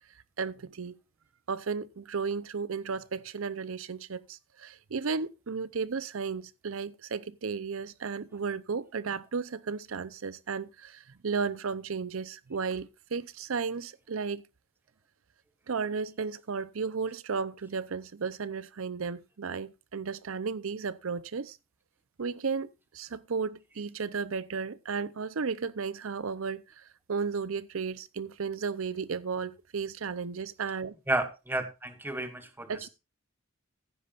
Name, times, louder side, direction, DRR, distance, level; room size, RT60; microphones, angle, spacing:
voice 1, 0.4-1.0 1.5-14.4 15.7-21.6 22.2-22.7 22.9-30.9 32.7-32.9, right 5 dB, 75° right, 0.6 m, -34 dB
voice 2, 31.1-32.7, right 1 dB, 10° right, 1.2 m, -31 dB
15.0 x 9.8 x 2.5 m
head